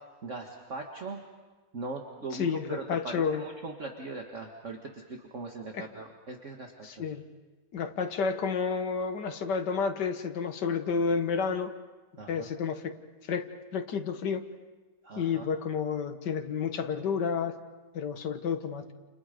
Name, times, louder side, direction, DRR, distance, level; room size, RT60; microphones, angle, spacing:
voice 1, 0.2-1.2 1.7-7.0 12.2-12.5 15.0-15.5, right 3 dB, 45° right, 1 dB, 1.9 m, -40 dB
voice 2, 2.3-3.4 5.7-5.9 6.8-7.3 7.7-11.7 12.3-12.9 13.3-13.5 13.7-14.4 15.2-17.5 17.9-18.8, left 6 dB, 70° left, 6 dB, 2.0 m, -30 dB
29.5 x 29.0 x 5.2 m, 1.3 s
omnidirectional pair, 1.9 m